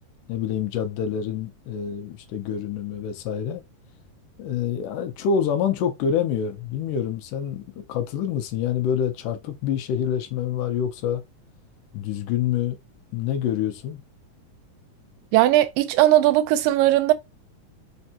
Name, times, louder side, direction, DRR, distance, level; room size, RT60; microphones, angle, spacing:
voice 1, 0.3-3.6 4.4-11.2 11.9-12.8 13.1-14.0, left 8 dB, 80° left, 2.2 m, -26 dB
voice 2, 15.3-17.1, right 14 dB, 90° right, 2.3 m, -18 dB
5.2 x 3.3 x 2.8 m
omnidirectional pair, 3.9 m